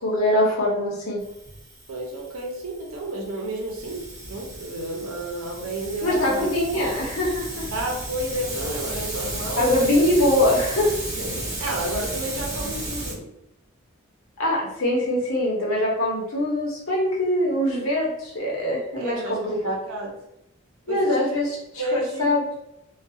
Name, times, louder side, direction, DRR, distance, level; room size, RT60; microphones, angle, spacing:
voice 1, 0.0-1.2 6.0-7.7 9.6-10.9 14.4-19.8 20.9-21.6 21.9-22.4, left 1 dB, 80° left, -4 dB, 0.8 m, -23 dB
Hiss, 1.2-13.1, right 1 dB, 20° right, 1.0 m, -34 dB
voice 2, 1.9-6.5 6.7-7.0 7.7-9.7 11.1-13.3 19.0-20.2 20.9-21.3 21.8-22.5, right 1 dB, 85° right, 0 dB, 0.7 m, -31 dB
2.4 x 2.3 x 2.6 m, 0.82 s
head